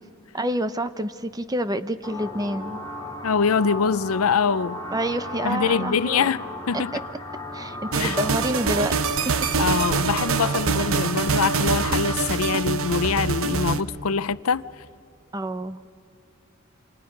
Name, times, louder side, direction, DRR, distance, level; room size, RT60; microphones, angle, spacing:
voice 1, 0.3-2.8 4.9-6.3 6.7-7.0 7.5-8.9 9.3-9.4 15.3-15.8, right 1 dB, 15° right, 0.7 m, -28 dB
sound 1, 2.0-12.1, left 2 dB, 20° left, 2.5 m, -35 dB
voice 2, 3.2-4.8 5.4-6.9 8.0-8.2 9.6-14.6, left 5 dB, 85° left, 0.6 m, -24 dB
sound 2, 7.9-13.8, right 5 dB, 70° right, 0.9 m, -24 dB
29.0 x 27.0 x 5.3 m
head